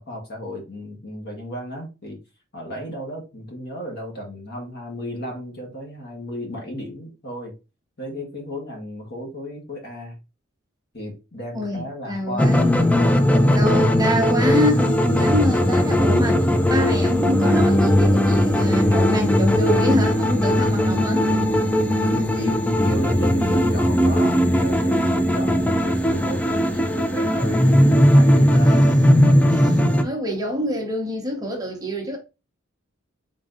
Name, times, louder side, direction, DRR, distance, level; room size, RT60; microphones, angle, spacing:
voice 1, 0.0-2.2 2.5-7.5 8.0-10.2 10.9-12.7 13.0-14.0 21.4-27.7 28.1-28.9, equal, 50° left, 1.4 m, -34 dB
voice 2, 11.5-12.7 13.5-21.3 29.5-32.2, left 1 dB, 20° right, 0.9 m, -26 dB
sound 1, 12.4-30.0, equal, 5° left, 0.3 m, -18 dB
3.8 x 3.7 x 2.5 m
head